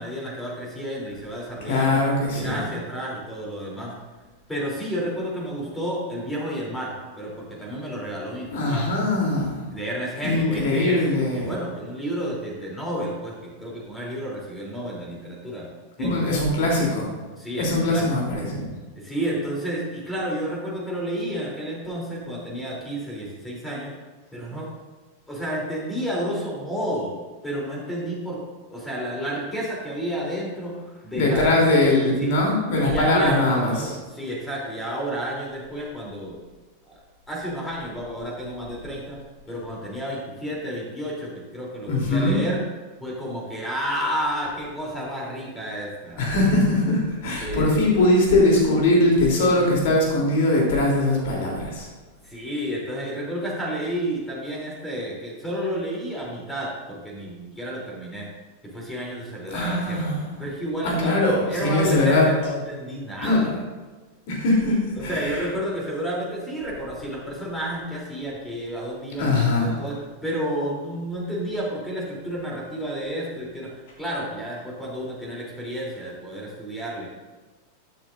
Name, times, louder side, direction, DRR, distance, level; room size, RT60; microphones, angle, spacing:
voice 1, 0.0-2.0 2.3-3.9 4.5-8.8 9.7-11.0 11.3-15.7 16.0-16.4 17.4-18.2 18.9-23.9 24.3-24.7 25.3-27.1 27.4-28.4 28.7-32.3 32.8-36.4 36.9-37.0 37.3-39.2 39.5-42.6 43.0-46.2 47.4-47.9 52.2-58.3 58.7-60.0 60.4-61.1 61.5-63.6 64.9-77.1, equal, 10° left, -4 dB, 3.1 m, -31 dB
voice 2, 1.6-2.6 8.5-9.6 10.2-11.5 16.0-17.1 17.5-18.6 31.1-33.9 41.9-42.4 46.2-51.9 59.5-60.3 60.8-62.3 63.2-63.5 64.3-65.5 69.2-69.8, left 2 dB, 50° left, -2 dB, 3.2 m, -21 dB
12.5 x 9.3 x 2.6 m, 1.3 s
figure-of-eight pair, 90°, 0 cm